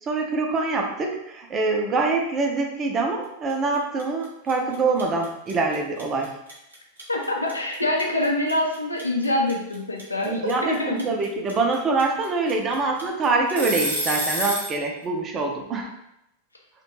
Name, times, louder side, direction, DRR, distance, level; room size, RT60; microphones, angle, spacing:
voice 1, 0.0-6.3 10.2-15.9, right 3 dB, 25° right, 2 dB, 0.4 m, -25 dB
sound 1, 3.5-3.7 4.0-14.8, equal, 80° right, 0.7 m, -29 dB
voice 2, 7.1-11.1, left 1 dB, 80° left, 0 dB, 0.5 m, -25 dB
2.4 x 2.1 x 3.0 m, 0.83 s
figure-of-eight pair, 90°, 0 cm